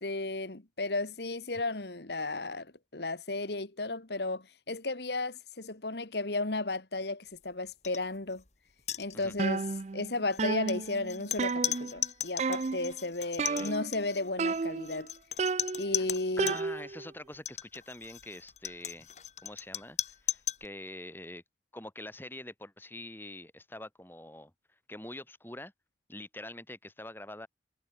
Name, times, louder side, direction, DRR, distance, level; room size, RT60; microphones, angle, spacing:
voice 1, 0.0-8.4 9.0-9.6 9.9-15.1 15.8-16.6, left 2 dB, 70° left, 1.9 m, -34 dB
sound 1, 7.8-8.0 8.3-8.5 8.8-9.5 10.3-16.6 17.3-20.7, left 11 dB, 40° left, 2.1 m, -37 dB
sound 2, 9.4-10.1 10.4-12.1 12.4-13.0 13.4-14.1 14.4-15.0 15.4-17.1, right 4 dB, 40° right, 0.4 m, -32 dB
voice 2, 13.4-13.8 15.9-16.1 16.4-19.1 19.4-21.4 21.7-24.5 24.9-25.7 26.1-27.5, left 1 dB, 10° left, 3.4 m, -45 dB
head